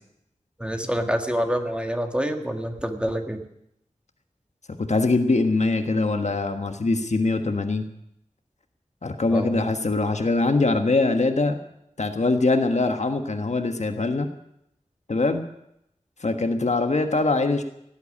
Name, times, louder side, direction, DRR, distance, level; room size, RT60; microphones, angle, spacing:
voice 1, 0.6-3.4 9.3-9.7, equal, 10° right, 5 dB, 1.7 m, -27 dB
voice 2, 4.8-7.9 9.0-11.6 12.0-14.3 15.1-15.4 16.2-17.6, left 3 dB, 60° left, 6 dB, 1.4 m, -23 dB
17.0 x 8.2 x 9.8 m, 0.80 s
wide cardioid pair, 70°, 13 cm